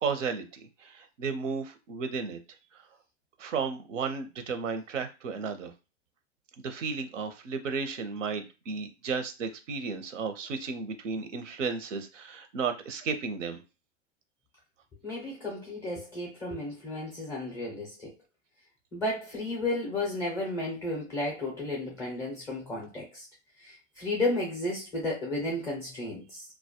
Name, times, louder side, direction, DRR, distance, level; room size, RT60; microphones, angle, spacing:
voice 1, 0.0-2.4 2.7-2.8 3.4-5.7 6.6-13.6, right 5 dB, 75° right, 8 dB, 0.6 m, -33 dB
voice 2, 15.0-18.1 18.9-23.3 23.6-26.4, left 2 dB, 10° left, -3 dB, 0.4 m, -33 dB
2.2 x 2.0 x 2.8 m, 0.29 s
hypercardioid pair, 130°, 38 cm